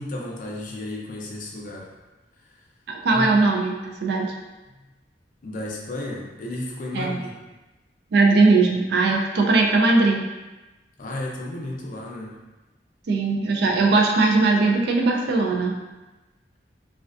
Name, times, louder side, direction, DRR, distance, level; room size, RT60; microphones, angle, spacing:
voice 1, 0.0-1.9 3.1-3.3 5.4-7.3 11.0-12.4, left 1 dB, 50° left, -2 dB, 0.4 m, -33 dB
voice 2, 2.9-4.3 6.9-7.2 8.1-10.2 13.1-15.8, right 3 dB, 65° right, 1 dB, 0.4 m, -19 dB
2.4 x 2.2 x 2.4 m, 1.1 s
head